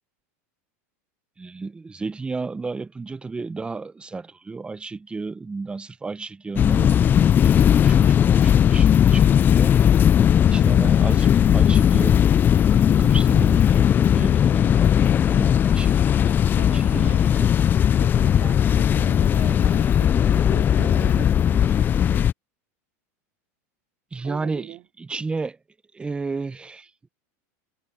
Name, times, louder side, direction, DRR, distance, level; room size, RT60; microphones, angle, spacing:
voice 1, 1.4-9.7 10.4-12.2 12.7-16.4 16.7-17.5 24.1-25.6 25.9-26.9, right 4 dB, 10° right, 0.8 m, -33 dB
sound 1, 6.6-22.3, left 9 dB, 25° left, 0.3 m, -17 dB
voice 2, 10.3-10.6 16.5-17.2 18.0-22.2 24.2-24.9, right 17 dB, 50° right, 4.1 m, -41 dB
supercardioid pair, 125°, 8 cm